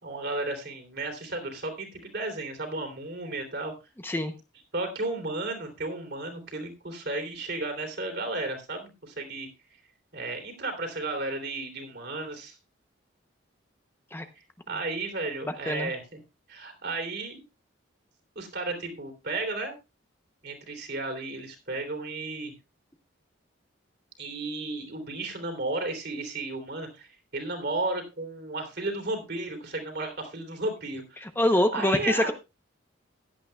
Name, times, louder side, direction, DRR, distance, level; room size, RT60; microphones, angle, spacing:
voice 1, 0.0-3.7 4.7-9.5 10.1-12.6 14.3-16.0 16.5-17.4 18.3-19.7 20.4-22.5 24.2-31.2 31.7-32.3, right 2 dB, 55° right, 4 dB, 3.2 m, -33 dB
voice 2, 4.0-4.3 14.1-14.3 15.5-15.9 31.2-32.3, left 1 dB, 10° left, 8 dB, 0.7 m, -25 dB
16.0 x 11.0 x 2.3 m, 0.27 s
head